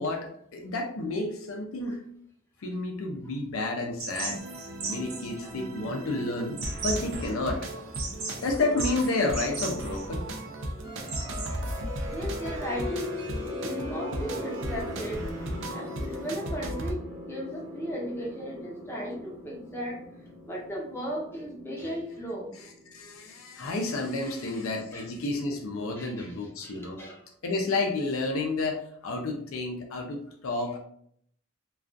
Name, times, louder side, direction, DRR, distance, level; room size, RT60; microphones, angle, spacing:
voice 1, 0.0-2.0 2.6-4.4 4.9-7.7 8.4-10.3 22.9-27.0 27.4-30.8, left 2 dB, 80° left, 2 dB, 0.5 m, -30 dB
sound 1, 4.0-11.8, right 4 dB, 80° right, 0.8 m, -38 dB
sound 2, 4.3-16.9, right 1 dB, 60° right, 0.4 m, -36 dB
sound 3, 10.8-23.3, left 2 dB, 20° right, 0.7 m, -40 dB
voice 2, 12.1-15.2 15.7-20.0 20.5-22.5 24.2-24.6 24.9-25.1 26.0-27.2, equal, 10° left, -3 dB, 0.6 m, -36 dB
2.3 x 2.3 x 2.5 m, 0.66 s
head